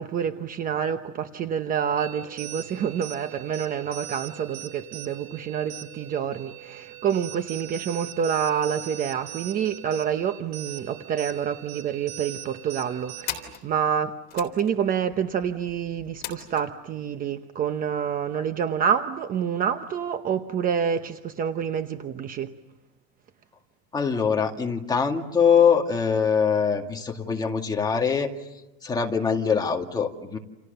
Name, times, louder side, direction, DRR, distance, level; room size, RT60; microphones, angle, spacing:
voice 1, 0.0-22.5, right 8 dB, 25° right, 9 dB, 0.9 m, -27 dB
sound 1, 2.0-13.6, right 12 dB, 50° right, 3.1 m, -41 dB
sound 2, 10.5-10.7 11.0-11.1 11.4-12.0 12.6-16.7, left 10 dB, 30° left, 3.7 m, -40 dB
voice 2, 23.9-28.3 28.8-30.4, left 6 dB, 10° left, 2 dB, 2.1 m, -23 dB
29.5 x 29.0 x 6.9 m, 1.0 s
supercardioid pair, 160°, 34 cm